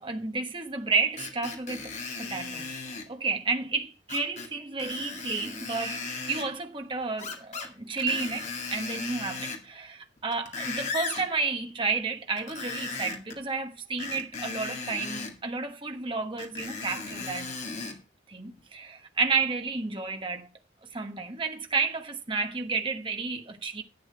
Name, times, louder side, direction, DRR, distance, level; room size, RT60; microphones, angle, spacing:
voice 1, 0.0-2.7 3.1-17.5 18.3-20.5 20.9-23.8, right 4 dB, 30° right, 1.2 m, -31 dB
Screech, 1.2-3.1 4.1-4.5 4.8-6.5 7.2-7.7 8.0-9.7 10.2-11.3 12.4-13.4 14.0-15.3 16.4-18.0 18.6-18.7, left 4 dB, 40° left, 2.1 m, -36 dB
11.5 x 8.0 x 4.7 m
head